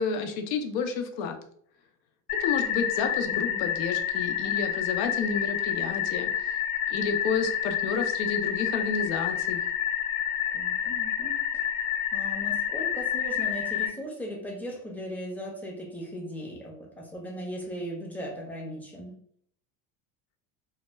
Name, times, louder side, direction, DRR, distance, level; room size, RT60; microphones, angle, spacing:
voice 1, 0.0-1.4 2.4-6.5 6.9-9.6, left 5 dB, 75° left, 5 dB, 0.6 m, -30 dB
sound 1, 2.3-13.9, left 9 dB, 35° left, 0.7 m, -29 dB
voice 2, 3.3-3.7 10.5-11.6 12.1-19.2, equal, 5° left, -1 dB, 0.5 m, -38 dB
2.1 x 2.1 x 3.2 m, 0.63 s
supercardioid pair, 110°, 41 cm